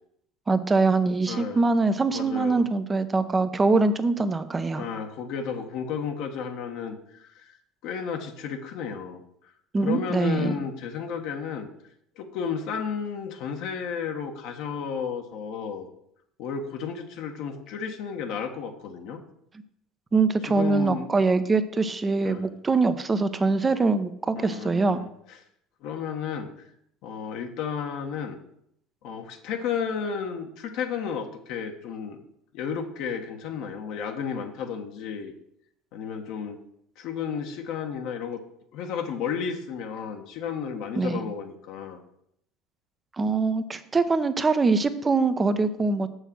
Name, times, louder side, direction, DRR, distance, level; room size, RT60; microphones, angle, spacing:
voice 1, 0.5-4.8 9.7-10.6 20.1-25.0 41.0-41.3 43.1-46.1, right 3 dB, 25° right, 11 dB, 0.9 m, -23 dB
voice 2, 1.3-1.6 2.1-2.6 4.8-7.6 7.8-9.2 9.8-11.7 12.2-15.9 16.4-19.2 20.5-21.1 22.2-22.5 24.4-25.1 25.8-26.5 27.0-28.4 29.0-32.2 32.5-35.3 35.9-36.6 37.0-38.4 38.7-42.0, left 6 dB, 65° left, 4 dB, 1.3 m, -32 dB
6.8 x 6.4 x 6.3 m, 0.74 s
hypercardioid pair, 75°, 0 cm